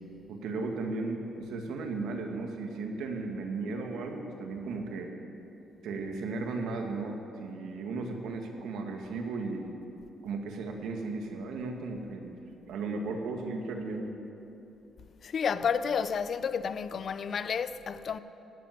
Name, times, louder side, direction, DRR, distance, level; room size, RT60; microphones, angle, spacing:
voice 1, 0.3-5.1 5.8-9.7 10.2-12.4 12.7-14.2, right 3 dB, 80° right, 1.8 m, -35 dB
voice 2, 15.2-18.2, left 6 dB, 55° left, 0.6 m, -31 dB
16.5 x 7.4 x 9.4 m
cardioid pair, 90°, 0 cm